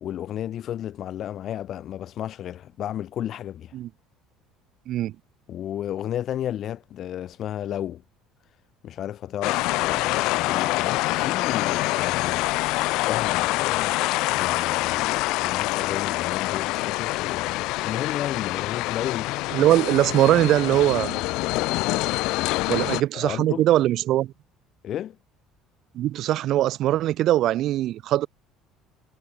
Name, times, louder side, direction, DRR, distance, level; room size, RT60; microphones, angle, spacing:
voice 1, 0.0-3.7 5.5-8.0 8.8-12.5 13.1-14.0 14.3-19.4 22.7-22.9 23.1-23.6 24.8-25.2, left 11 dB, 50° left, 0.9 m, -33 dB
sound 1, 9.4-23.0, left 21 dB, 75° left, 0.4 m, -25 dB
voice 2, 19.5-21.2 22.7-24.3 25.9-28.3, right 13 dB, 60° right, 1.1 m, -21 dB
cardioid pair, 115°, 0 cm